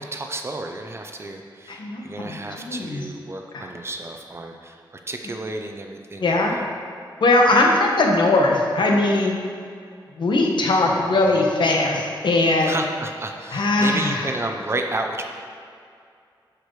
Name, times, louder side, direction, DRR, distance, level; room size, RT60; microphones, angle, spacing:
voice 1, 0.0-6.6 12.6-15.2, right 2 dB, 30° right, 3 dB, 0.7 m, -31 dB
voice 2, 1.7-3.0 3.5-3.7 6.2-6.6 7.2-9.4 10.2-12.7 13.5-14.3, left 2 dB, 65° left, 0 dB, 1.3 m, -20 dB
12.5 x 5.1 x 4.8 m, 2.3 s
wide cardioid pair, 165°, 8 cm